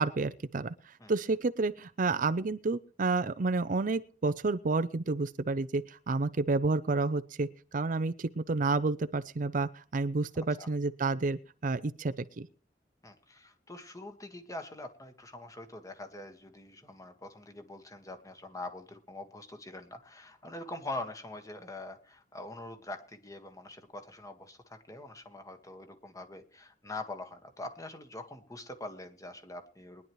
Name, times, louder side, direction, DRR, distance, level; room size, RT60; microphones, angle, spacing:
voice 1, 0.0-12.5, right 3 dB, 45° right, 11 dB, 0.5 m, -30 dB
voice 2, 13.0-30.1, left 2 dB, 20° left, 6 dB, 1.5 m, -44 dB
22.0 x 10.5 x 3.1 m, 0.39 s
head